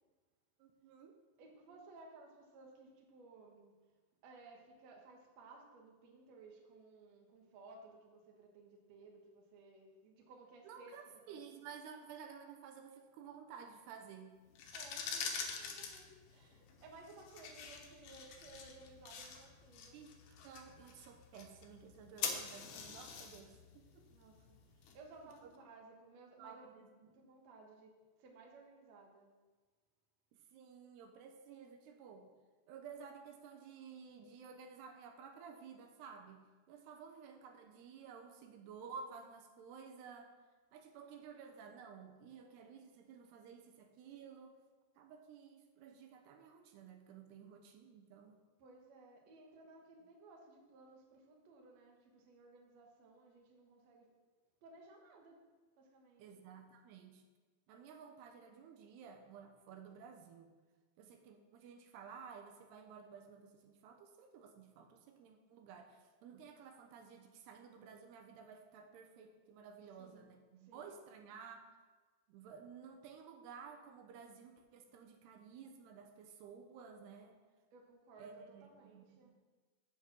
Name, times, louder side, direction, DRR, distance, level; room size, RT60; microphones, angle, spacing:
voice 1, 0.6-1.2 10.6-14.4 19.9-20.1 20.4-24.0 26.4-27.2 30.3-32.3 32.7-36.4 36.7-40.3 40.7-44.6 45.0-48.4 56.2-57.2 57.7-60.5 61.0-71.7 72.3-77.4 78.2-79.3, right 6 dB, 85° right, 4 dB, 3.1 m, -54 dB
voice 2, 1.4-3.7 4.2-10.9 11.3-11.5 14.7-20.0 24.1-26.7 27.1-27.9 28.2-29.3 48.6-54.1 54.6-55.4 55.8-56.4 69.9-70.3 70.6-71.0 77.7-79.3, right 3 dB, 55° right, 0 dB, 2.0 m, -59 dB
sound 1, 14.5-25.3, left 6 dB, 70° left, 2.1 m, -46 dB
8.3 x 7.1 x 6.1 m, 1.3 s
omnidirectional pair, 4.6 m